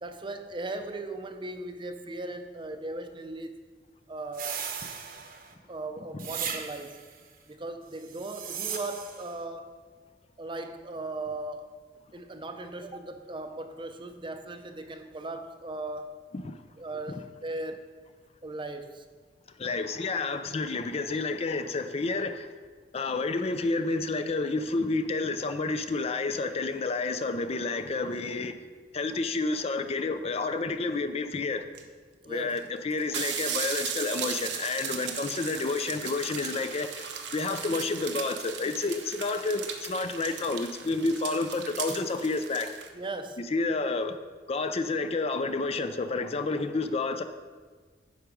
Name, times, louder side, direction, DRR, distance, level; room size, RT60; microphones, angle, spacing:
voice 1, 0.0-3.7 4.1-4.7 5.7-7.0 7.5-9.8 10.4-11.7 12.1-16.1 16.8-17.9 18.4-19.1 32.2-32.6 42.9-43.4, right 2 dB, 30° right, 7 dB, 0.6 m, -38 dB
sound 1, 4.3-5.5 6.2-7.1 8.0-9.3, right 7 dB, 55° right, 0.9 m, -37 dB
voice 2, 19.6-22.5 22.9-28.5 28.9-31.6 32.3-42.7 43.5-44.2 44.5-47.2, left 3 dB, 35° left, 9 dB, 0.4 m, -30 dB
sound 2, 31.7-31.8 32.6-32.7 32.9-42.9, right 7 dB, 85° right, 0.9 m, -37 dB
9.4 x 5.9 x 5.1 m, 1.5 s
head